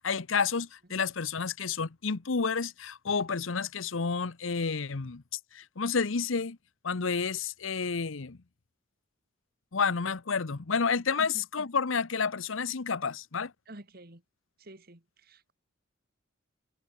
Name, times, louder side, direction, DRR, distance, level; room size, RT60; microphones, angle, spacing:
voice 1, 0.0-5.2 5.5-6.6 6.8-8.4 9.7-13.5, left 5 dB, 75° left, 0.9 m, -30 dB
voice 2, 11.2-11.7 13.7-14.2 14.6-15.5, right 1 dB, 50° right, 2.9 m, -49 dB
head